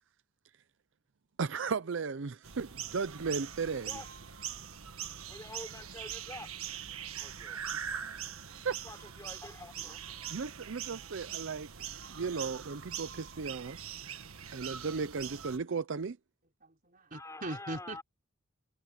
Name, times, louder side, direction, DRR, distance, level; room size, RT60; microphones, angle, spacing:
voice 1, 1.4-4.0 7.7-7.9 8.6-8.8 10.3-11.7 12.1-13.8 14.5-16.2, right 5 dB, 60° right, 0.6 m, -35 dB
sound 1, 2.4-15.6, right 9 dB, 90° right, 1.6 m, -42 dB
voice 2, 5.3-6.6 7.2-7.6 8.8-10.1 17.1-18.0, left 2 dB, 15° left, 4.6 m, -47 dB
voice 3, 7.9-8.6 14.6-14.7 16.6-18.0, right 1 dB, 40° right, 4.6 m, -43 dB
head